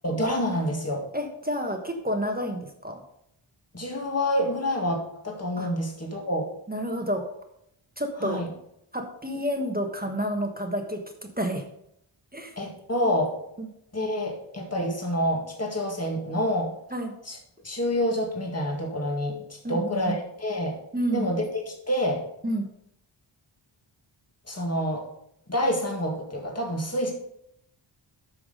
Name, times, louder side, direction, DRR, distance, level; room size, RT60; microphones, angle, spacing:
voice 1, 0.0-1.1 3.7-6.5 8.2-8.5 12.6-13.4 13.9-16.7 17.2-17.4 17.6-20.8 21.1-22.2 24.5-25.1 25.5-27.1, equal, 30° left, 0 dB, 2.0 m, -27 dB
voice 2, 1.1-3.0 5.6-5.7 6.7-7.3 8.0-8.4 8.9-11.6 12.3-12.5 13.6-13.7 16.9-17.1 19.6-20.1 20.9-21.3 22.4-22.7, equal, 20° right, 4 dB, 1.3 m, -29 dB
8.9 x 5.9 x 5.2 m, 0.76 s
wide cardioid pair, 55°, 49 cm